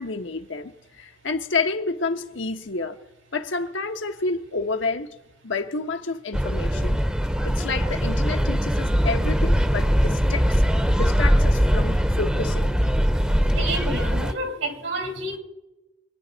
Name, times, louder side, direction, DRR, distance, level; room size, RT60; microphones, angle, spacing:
voice 1, 0.0-3.0 3.3-5.2 5.4-7.0 7.4-10.6 11.0-12.8, left 3 dB, 70° left, 1.1 m, -29 dB
sound 1, 6.3-14.3, equal, 5° right, 0.8 m, -21 dB
voice 2, 13.5-15.4, right 1 dB, 85° right, 3.4 m, -29 dB
26.5 x 10.0 x 4.1 m
head